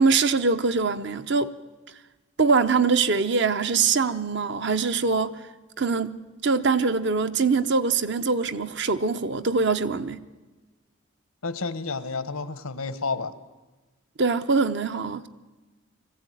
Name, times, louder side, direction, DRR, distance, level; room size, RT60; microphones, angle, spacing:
voice 1, 0.0-1.5 2.4-5.4 5.8-10.2 14.2-15.3, right 4 dB, 55° right, 0.7 m, -23 dB
voice 2, 11.4-13.3, left 4 dB, 90° left, 1.2 m, -30 dB
20.5 x 15.5 x 9.1 m
head